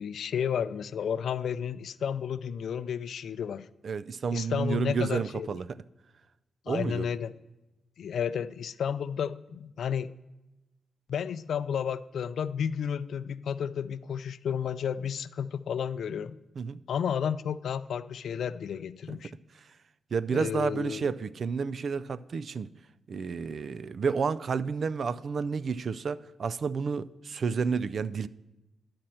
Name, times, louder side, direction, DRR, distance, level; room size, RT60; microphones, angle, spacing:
voice 1, 0.0-3.7 4.3-5.5 6.7-7.3 8.0-10.1 11.1-16.3 16.9-19.3 20.3-21.1, left 8 dB, 75° left, 0.3 m, -32 dB
voice 2, 3.8-5.8 6.7-7.1 16.6-16.8 19.1-19.2 20.1-22.7 23.1-28.3, right 5 dB, 55° right, 0.3 m, -30 dB
11.5 x 4.4 x 7.6 m
cardioid pair, 90°, 0 cm